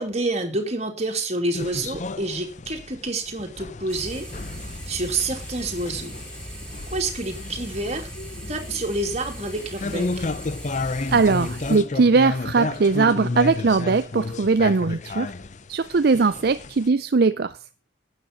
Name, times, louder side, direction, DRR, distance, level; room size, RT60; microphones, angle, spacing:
voice 1, 0.0-4.3 4.9-6.1 6.9-8.0 8.5-10.2, right 2 dB, 35° right, 3.1 m, -28 dB
sound 1, 1.5-16.9, left 3 dB, 40° left, 0.6 m, -32 dB
sound 2, 3.9-11.8, equal, 5° left, 6.2 m, -38 dB
voice 2, 11.1-15.3 15.7-17.6, right 4 dB, 55° right, 0.5 m, -20 dB
12.5 x 9.0 x 5.4 m
head